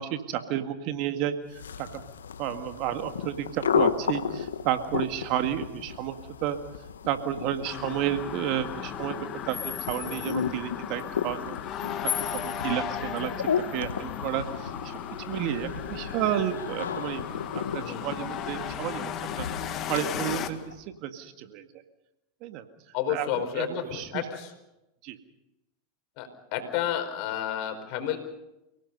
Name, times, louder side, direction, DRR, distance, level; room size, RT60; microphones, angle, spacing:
voice 1, 0.0-2.0 2.4-6.6 7.1-11.6 12.0-15.0 15.3-17.3 17.5-19.5 19.9-21.7 22.4-22.6 23.1-24.2 25.0-25.2, right 11 dB, 55° right, 8 dB, 2.0 m, -32 dB
sound 1, 1.5-20.8, left 7 dB, 90° left, 1.2 m, -34 dB
sound 2, 7.7-20.5, left 9 dB, 40° left, 1.8 m, -36 dB
voice 2, 13.9-14.3 17.8-18.2 22.9-24.5 26.2-28.2, left 10 dB, 55° left, 6 dB, 4.9 m, -32 dB
29.0 x 18.5 x 5.5 m, 0.92 s
hypercardioid pair, 100°, 0 cm